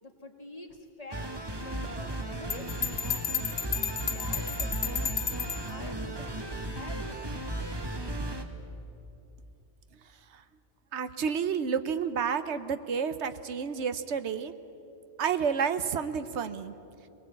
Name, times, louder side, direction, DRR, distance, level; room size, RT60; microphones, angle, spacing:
voice 1, 0.0-3.0 4.0-7.5, left 2 dB, 35° left, 4 dB, 1.7 m, -47 dB
sound 1, 1.1-8.4, right 1 dB, 20° right, 1.3 m, -35 dB
Bell, 2.5-5.7, left 7 dB, 80° left, 1.5 m, -32 dB
voice 2, 10.9-14.5 15.2-16.7, right 6 dB, 85° right, 11 dB, 1.1 m, -30 dB
21.5 x 19.0 x 8.2 m, 3.0 s
omnidirectional pair, 1.1 m